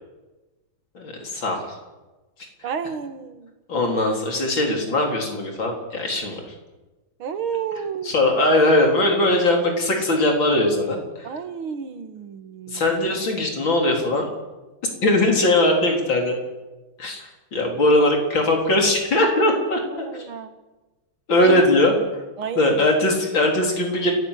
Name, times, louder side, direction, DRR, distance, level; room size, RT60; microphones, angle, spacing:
voice 1, 0.9-1.6 3.7-6.4 8.1-11.3 12.7-14.3 15.0-16.4 17.0-17.2 17.5-19.8 21.3-22.0 22.6-24.1, left 1 dB, 65° left, 2 dB, 4.7 m, -20 dB
voice 2, 2.6-3.6 7.2-8.1 8.7-8.8 11.2-12.9 19.9-20.6 21.4-21.8 22.4-22.9, right 7 dB, 85° right, 9 dB, 2.4 m, -31 dB
30.0 x 15.0 x 8.2 m, 1.2 s
omnidirectional pair, 2.2 m